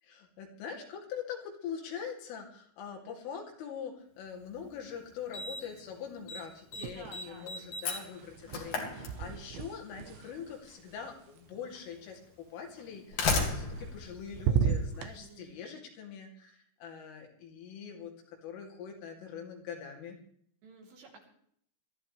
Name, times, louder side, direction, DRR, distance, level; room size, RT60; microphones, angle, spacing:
voice 1, 0.0-20.2, left 7 dB, 75° left, 1 dB, 5.2 m, -43 dB
Slam, 4.5-4.6 5.3-5.8 6.1-6.4 6.7-9.7 10.8-10.9 11.8-11.9 12.8-15.1, left 3 dB, 45° left, 2.8 m, -35 dB
voice 2, 6.7-7.6 15.2-15.8 20.6-21.3, right 3 dB, 55° right, 0 dB, 5.3 m, -53 dB
sound 1, 6.7-7.5 7.7-11.8 13.4-14.1 14.3-15.1, right 7 dB, 75° right, 2.9 m, -35 dB
22.0 x 14.0 x 3.3 m, 0.65 s
omnidirectional pair, 5.9 m